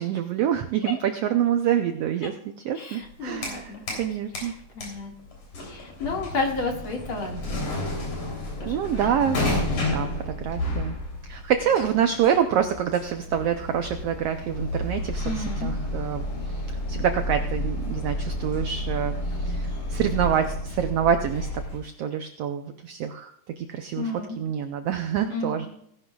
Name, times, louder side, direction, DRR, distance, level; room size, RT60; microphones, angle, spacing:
voice 1, 0.0-2.4 2.6-4.5 8.6-11.0 11.2-23.3 23.6-25.7, right 9 dB, 80° right, 7 dB, 1.4 m, -26 dB
voice 2, 2.8-4.0 4.4-5.1 5.6-9.4 15.2-15.7 24.0-24.4 25.3-25.7, left 3 dB, 45° left, 0 dB, 2.5 m, -33 dB
sound 1, 3.0-4.1 4.3-21.8, left 1 dB, 70° left, 4.7 m, -31 dB
17.5 x 11.0 x 2.3 m, 0.72 s
omnidirectional pair, 3.5 m